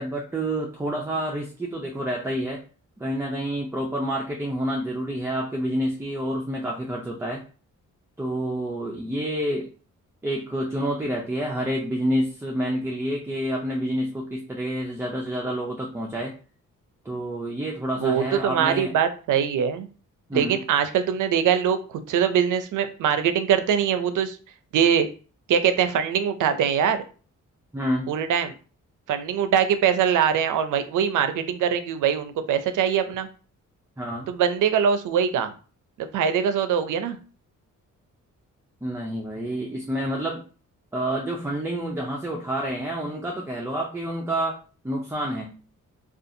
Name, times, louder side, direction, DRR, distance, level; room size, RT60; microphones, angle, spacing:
voice 1, 0.0-2.6 3.0-7.4 8.2-9.7 10.2-16.3 17.1-18.9 20.3-20.6 27.7-28.1 34.0-34.3 38.8-40.4 40.9-45.6, right 1 dB, 10° right, -1 dB, 0.3 m, -28 dB
voice 2, 18.0-19.9 20.3-21.8 22.1-24.4 24.7-25.1 25.5-27.0 28.1-28.5 29.1-33.3 34.3-35.5 36.0-37.2, right 8 dB, 70° right, 9 dB, 0.5 m, -22 dB
2.6 x 2.4 x 2.5 m, 0.38 s
cardioid pair, 95°, 32 cm